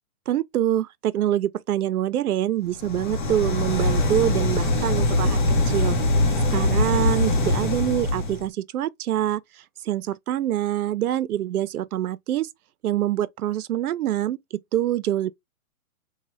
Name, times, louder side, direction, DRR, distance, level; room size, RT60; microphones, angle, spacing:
voice 1, 0.3-6.0 6.5-9.4 9.8-12.5 12.8-15.3, right 12 dB, 85° right, 0.5 m, -25 dB
sound 1, 2.7-8.5, left 2 dB, 35° left, 0.7 m, -22 dB
3.2 x 2.1 x 3.0 m
hypercardioid pair, 155°, 43 cm